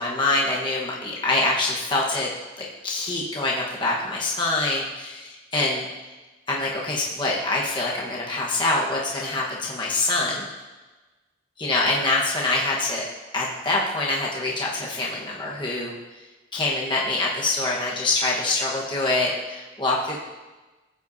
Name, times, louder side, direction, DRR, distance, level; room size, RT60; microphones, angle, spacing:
voice 1, 0.0-2.3 2.6-5.9 6.5-10.4 11.6-13.0 13.3-15.9 16.5-20.2, left 2 dB, 25° left, -4 dB, 1.2 m, -25 dB
15.5 x 8.1 x 2.7 m, 1.2 s
head